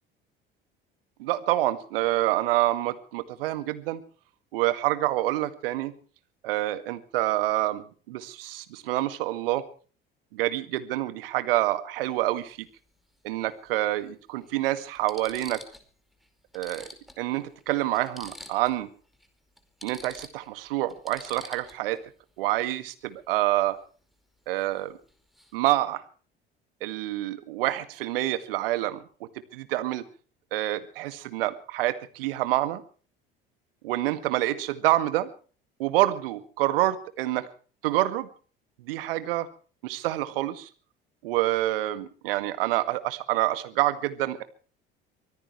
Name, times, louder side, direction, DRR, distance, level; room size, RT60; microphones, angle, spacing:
voice 1, 1.2-4.0 4.5-5.9 6.4-9.6 10.3-12.7 13.2-15.6 16.5-16.9 17.2-18.9 19.8-22.0 22.4-23.8 24.5-25.0 25.5-26.0 26.8-30.0 30.5-32.8 33.8-35.3 35.8-37.5 37.8-38.3 38.8-39.5 39.8-40.7 41.2-44.4, right 15 dB, 75° right, 12 dB, 2.0 m, -27 dB
sound 1, 12.0-12.2 13.7-13.8 14.4-14.5 14.9-15.9 16.2-16.3 16.5-18.8 19.1-19.3 19.6-22.0 24.6-24.8 25.1-25.5, equal, ahead, 4.8 m, -46 dB
24.5 x 17.5 x 3.2 m, 0.40 s
hypercardioid pair, 65°, 29 cm